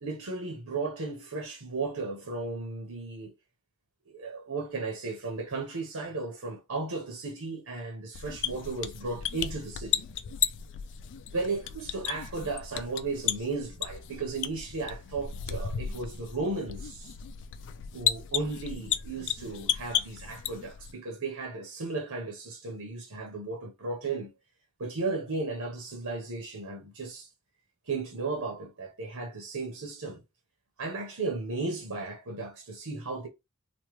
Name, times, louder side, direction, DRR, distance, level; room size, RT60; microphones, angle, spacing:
voice 1, 0.0-3.3 4.1-10.0 11.3-17.1 17.9-24.3 24.8-27.3 27.9-30.2 30.8-33.3, right 3 dB, 85° right, 1.0 m, -35 dB
sound 1, 8.1-20.9, left 9 dB, 55° left, 0.3 m, -34 dB
3.1 x 2.3 x 3.0 m
head